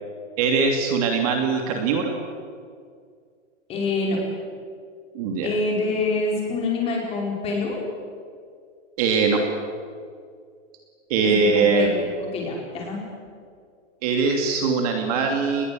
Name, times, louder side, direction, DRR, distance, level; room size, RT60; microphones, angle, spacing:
voice 1, 0.4-2.1 5.1-5.5 9.0-9.4 11.1-11.9 14.0-15.6, right 4 dB, 30° right, 3 dB, 2.6 m, -21 dB
voice 2, 3.7-4.2 5.4-7.8 11.2-12.0 12.3-13.0, left 3 dB, 15° left, -1 dB, 5.0 m, -26 dB
27.5 x 20.5 x 7.8 m, 2.2 s
hypercardioid pair, 170°, 36 cm